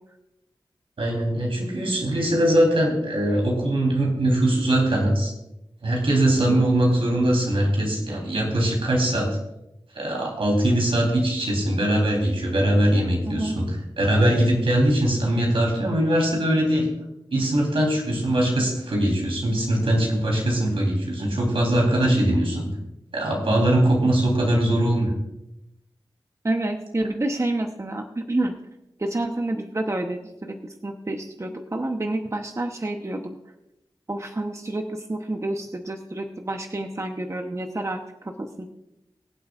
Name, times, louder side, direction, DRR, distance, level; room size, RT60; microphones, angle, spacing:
voice 1, 1.0-5.3 5.8-9.3 9.9-13.7 14.0-16.9 17.3-22.7 23.1-25.1, right 1 dB, 80° right, -1 dB, 3.7 m, -21 dB
voice 2, 6.3-6.7 13.2-13.6 26.4-28.5 29.0-33.4 34.1-38.7, right 2 dB, 30° right, 4 dB, 1.0 m, -29 dB
23.5 x 7.9 x 2.5 m, 0.89 s
cardioid pair, 45°, 9 cm